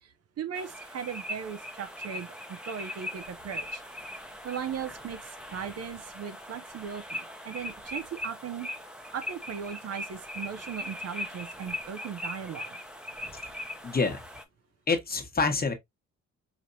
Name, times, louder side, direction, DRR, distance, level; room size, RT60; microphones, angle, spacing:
voice 1, 0.0-3.8 4.4-8.7 9.1-12.8, right 7 dB, 55° right, 0.7 m, -38 dB
sound 1, 0.5-14.4, left 1 dB, 5° right, 0.9 m, -40 dB
voice 2, 13.8-14.2 14.9-15.7, left 4 dB, 30° left, 1.3 m, -27 dB
5.1 x 2.8 x 2.6 m
cardioid pair, 90°, 30 cm